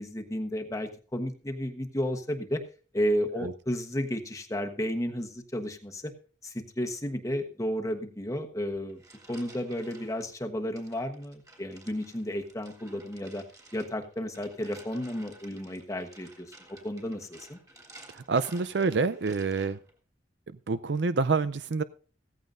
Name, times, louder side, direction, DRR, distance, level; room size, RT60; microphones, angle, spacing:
voice 1, 0.0-2.6 2.9-6.1 6.4-9.0 9.3-13.4 13.7-16.5 16.8-17.6, equal, 20° left, 5 dB, 1.1 m, -32 dB
sound 1, 8.7-10.3 10.8-19.9, right 2 dB, 20° right, 3.2 m, -54 dB
voice 2, 18.1-19.8 20.7-21.8, right 4 dB, 70° right, 14 dB, 0.5 m, -27 dB
16.0 x 14.5 x 2.6 m, 0.39 s
head